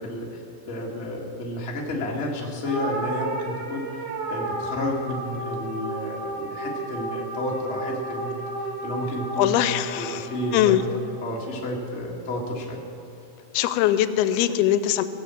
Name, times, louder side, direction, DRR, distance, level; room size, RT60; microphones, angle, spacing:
voice 1, 0.0-3.8 4.3-9.5 10.0-10.8 11.2-12.8, left 1 dB, 65° left, -2 dB, 0.6 m, -31 dB
sound 1, 2.6-11.2, right 2 dB, 70° right, 3.6 m, -32 dB
voice 2, 9.4-10.8 13.5-15.0, left 12 dB, 85° left, 12 dB, 2.4 m, -22 dB
17.5 x 7.6 x 7.5 m, 3.0 s
omnidirectional pair, 4.5 m